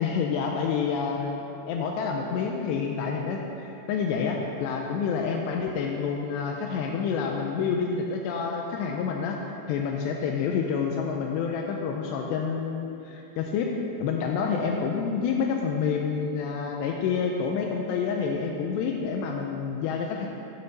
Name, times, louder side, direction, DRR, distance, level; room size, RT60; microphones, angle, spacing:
voice 1, 0.0-9.4 9.7-13.7 14.0-20.3, left 6 dB, 85° left, 1 dB, 2.7 m, -28 dB
13.0 x 5.7 x 3.9 m, 2.9 s
omnidirectional pair, 5.0 m